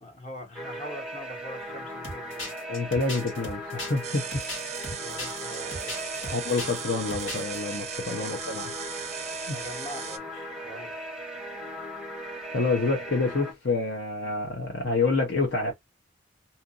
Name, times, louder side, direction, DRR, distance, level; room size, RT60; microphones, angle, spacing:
voice 1, 0.0-2.5 5.0-6.3 8.1-8.3 9.5-10.9, left 1 dB, 35° left, 1.0 m, -43 dB
sound 1, 0.5-13.5, right 1 dB, 5° right, 0.8 m, -38 dB
sound 2, 2.0-6.8 7.1-7.6, left 1 dB, 85° left, 1.6 m, -37 dB
voice 2, 2.7-4.4 6.3-8.7 9.5-9.6 12.5-15.7, left 3 dB, 60° left, 0.7 m, -28 dB
sound 3, 4.0-10.2, right 9 dB, 35° right, 0.5 m, -38 dB
2.8 x 2.5 x 2.5 m
head